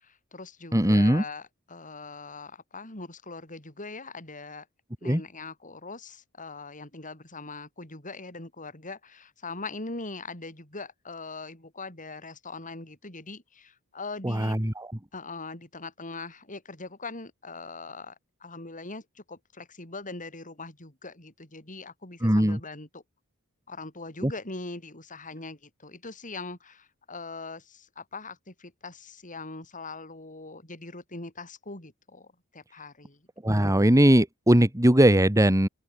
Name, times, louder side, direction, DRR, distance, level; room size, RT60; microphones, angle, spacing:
voice 1, 0.0-4.6 5.0-14.6 15.1-18.1 18.4-23.0 23.7-32.3 32.5-33.2, left 3 dB, 35° left, 6.7 m, -41 dB
voice 2, 0.7-1.2 5.0-5.2 14.2-14.9 22.2-22.6 24.2-24.3 33.4-35.7, right 1 dB, 15° right, 2.0 m, -20 dB
open air
head